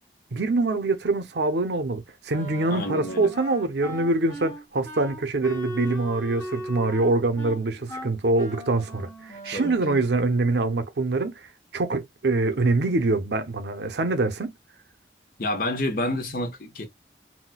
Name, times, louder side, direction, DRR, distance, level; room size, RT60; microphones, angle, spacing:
voice 1, 0.3-11.5 11.7-14.5, right 2 dB, 80° right, 0.6 m, -24 dB
Wind instrument woodwind instrument, 2.3-9.9, right 1 dB, 15° left, 1.1 m, -38 dB
voice 2, 2.7-3.3 9.5-10.0 15.4-16.9, left 1 dB, 50° left, 0.9 m, -29 dB
4.0 x 2.1 x 2.2 m
head